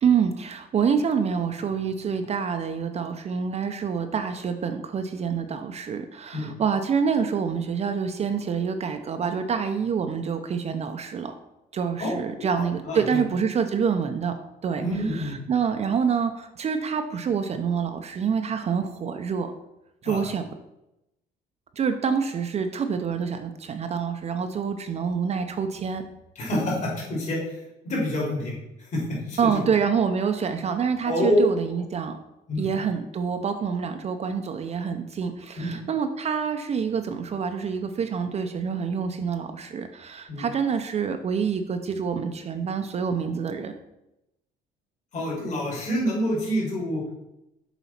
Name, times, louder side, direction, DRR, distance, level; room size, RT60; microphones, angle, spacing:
voice 1, 0.0-11.3 11.7-14.3 14.6-19.5 20.0-20.5 21.8-26.0 29.4-32.2 32.6-43.7, right 6 dB, 40° right, 7 dB, 0.6 m, -27 dB
voice 2, 12.0-13.2 14.8-15.4 20.0-20.3 26.3-28.5 28.9-29.6 31.0-31.4 31.7-31.8 32.5-32.7 35.6-35.7 40.3-40.5 45.1-47.0, equal, 45° left, -5 dB, 3.0 m, -28 dB
7.1 x 4.1 x 5.7 m, 0.89 s
cardioid pair, 110°, 17 cm